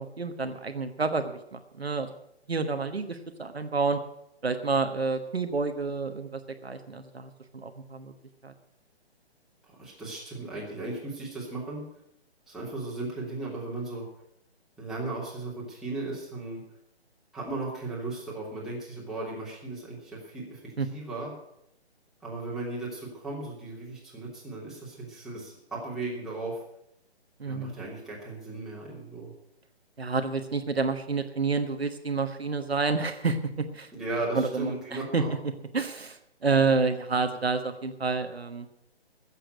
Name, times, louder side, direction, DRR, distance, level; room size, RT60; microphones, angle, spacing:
voice 1, 0.0-2.1 2.5-4.0 4.4-8.1 8.4-8.5 20.8-20.9 27.4-27.8 30.0-33.9 34.3-35.2 35.7-38.7, right 4 dB, 70° right, 7 dB, 1.3 m, -29 dB
voice 2, 9.6-11.8 12.5-14.1 14.8-16.6 17.3-21.3 22.2-26.6 27.4-29.3 33.9-35.3, right 2 dB, ahead, -6 dB, 3.1 m, -36 dB
15.0 x 7.7 x 8.0 m, 0.78 s
figure-of-eight pair, 140°, 32 cm